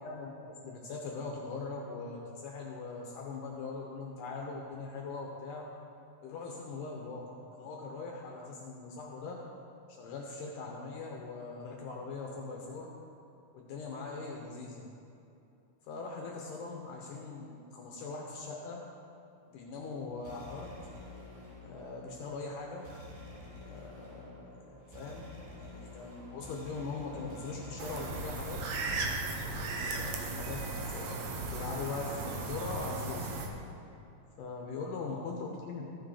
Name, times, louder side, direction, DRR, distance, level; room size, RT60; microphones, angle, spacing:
voice 1, 0.0-0.3 0.6-5.7 6.2-9.4 9.9-12.9 13.5-14.9 15.9-18.8 19.5-20.7 21.6-22.9 23.6-25.3 25.6-28.6 29.7-33.3 34.4-35.9, left 4 dB, 70° left, -1 dB, 2.1 m, -41 dB
sound 1, 19.6-28.9, left 2 dB, 60° right, 3.1 m, -49 dB
sound 2, 27.8-33.5, right 3 dB, 85° right, 1.5 m, -36 dB
14.5 x 6.3 x 4.9 m, 2.7 s
omnidirectional pair, 4.4 m